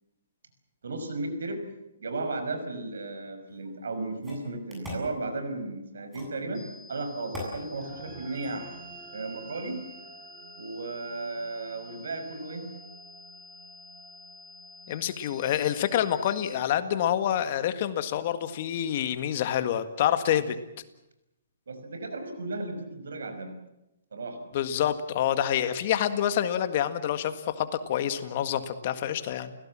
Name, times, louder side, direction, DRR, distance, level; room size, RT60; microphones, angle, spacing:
voice 1, 0.8-1.6 2.0-8.7 9.1-9.8 10.6-12.7 21.7-23.6 24.1-24.4, right 2 dB, 85° right, 8 dB, 5.5 m, -35 dB
sound 1, 3.5-3.6 4.2-5.1 6.1-6.4 7.3-7.6, left 2 dB, 5° right, 7.9 m, -39 dB
sound 2, 6.5-16.5, left 3 dB, 10° left, 7.8 m, -50 dB
sound 3, 7.7-18.4, right 4 dB, 35° right, 4.7 m, -51 dB
voice 2, 14.9-20.6 24.5-29.5, left 10 dB, 45° left, 10 dB, 1.8 m, -27 dB
29.5 x 17.0 x 7.6 m, 0.91 s
hypercardioid pair, 155°, 0 cm